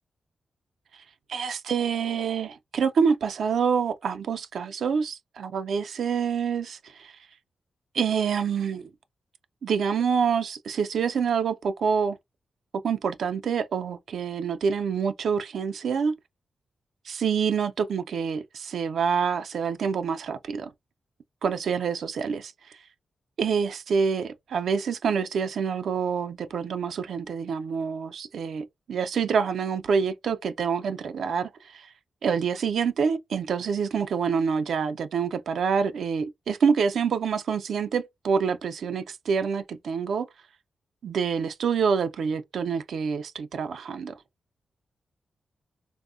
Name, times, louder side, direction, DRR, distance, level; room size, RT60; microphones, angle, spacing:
voice 1, 1.3-7.1 7.9-8.9 9.6-12.2 12.8-16.1 17.1-20.7 21.4-22.5 23.4-31.9 32.2-40.3 41.0-44.1, right 6 dB, 75° right, 0.3 m, -27 dB
3.4 x 2.0 x 2.4 m
wide cardioid pair, 110°, 0 cm